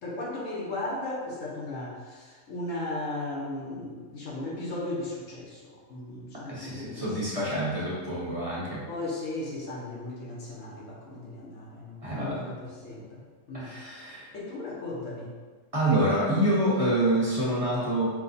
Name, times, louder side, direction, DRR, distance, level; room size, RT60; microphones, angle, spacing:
voice 1, 0.0-7.2 8.9-13.7 14.3-15.3, left 2 dB, 75° left, -5 dB, 1.3 m, -36 dB
voice 2, 6.5-8.8 12.0-12.4 13.5-14.3 15.7-18.1, right 1 dB, 30° right, -9 dB, 1.1 m, -27 dB
4.7 x 2.3 x 4.0 m, 1.5 s
omnidirectional pair, 1.4 m